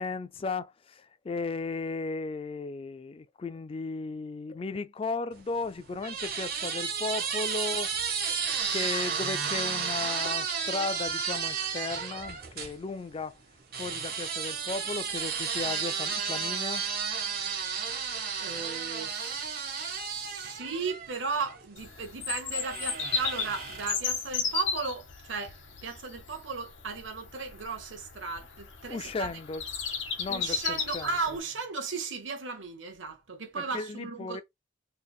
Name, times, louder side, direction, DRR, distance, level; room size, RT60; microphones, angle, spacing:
voice 1, 0.0-13.4 13.7-16.8 28.9-29.6 30.2-31.1 33.6-34.4, left 3 dB, 30° left, 0.3 m, -35 dB
sound 1, 5.4-12.7 13.7-21.6 22.5-24.1, right 6 dB, 50° right, 1.0 m, -33 dB
voice 2, 18.4-25.6 25.8-29.3 30.3-34.4, right 4 dB, 90° right, 1.1 m, -36 dB
Bird vocalization bird call bird song, 21.8-31.4, left 6 dB, 80° left, 1.1 m, -35 dB
3.5 x 3.3 x 2.3 m
head